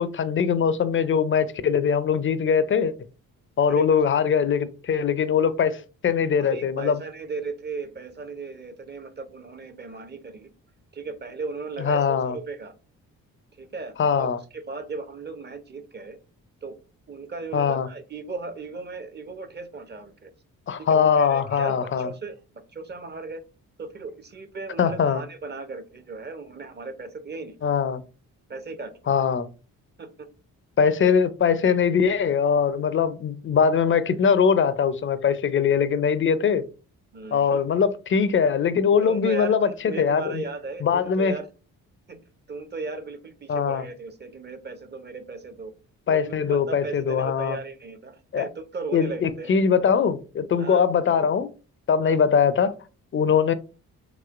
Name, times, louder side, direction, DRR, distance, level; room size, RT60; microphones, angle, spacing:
voice 1, 0.0-2.9 3.6-7.0 11.8-12.4 14.0-14.4 17.5-17.9 20.7-22.1 24.8-25.2 27.6-28.0 29.1-29.5 30.8-36.6 37.3-40.4 40.8-41.3 43.5-43.8 46.1-47.6 48.3-48.5 48.9-51.5 51.9-52.7 53.1-53.5, left 6 dB, 35° left, 0.4 m, -22 dB
voice 2, 3.7-4.0 6.4-10.5 10.9-12.7 13.6-14.3 14.5-16.2 16.6-16.7 17.1-20.3 20.8-22.4 22.7-23.4 23.8-27.6 28.5-28.9 30.0-30.3 37.1-37.6 39.0-41.5 42.1-42.2 42.5-45.7 46.1-49.6 50.6-50.8 52.0-52.2, right 3 dB, 30° right, 0.6 m, -36 dB
3.0 x 2.9 x 2.4 m
supercardioid pair, 50°, 37 cm